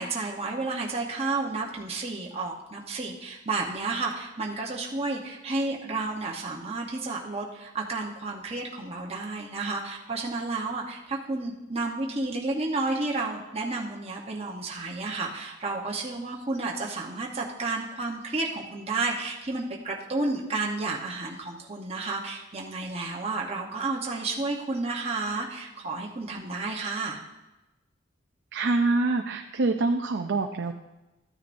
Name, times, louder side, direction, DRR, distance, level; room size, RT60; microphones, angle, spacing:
voice 1, 0.0-27.2, right 3 dB, 30° right, -2 dB, 1.0 m, -31 dB
voice 2, 28.5-30.7, right 3 dB, 55° right, 4 dB, 0.5 m, -25 dB
14.0 x 9.5 x 2.6 m, 1.0 s
head